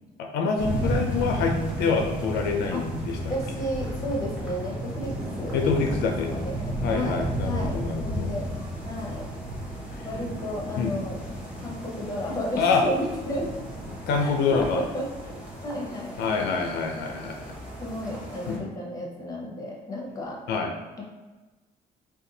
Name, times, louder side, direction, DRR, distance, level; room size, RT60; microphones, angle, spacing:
voice 1, 0.2-3.2 5.5-6.3 6.8-8.3 10.8-10.9 12.6-12.8 14.1-14.8 16.2-17.5 18.5-18.6 20.5-20.7, left 5 dB, 75° left, 3 dB, 0.4 m, -26 dB
sound 1, 0.6-18.6, equal, 5° right, 0.9 m, -33 dB
voice 2, 3.3-5.6 6.0-8.5 8.8-9.3 10.0-11.2 11.6-13.6 14.2-16.2 17.8-20.4 21.0-21.1, equal, 20° left, -1 dB, 0.8 m, -33 dB
2.6 x 2.3 x 3.9 m, 1.2 s
cardioid pair, 110°, 17 cm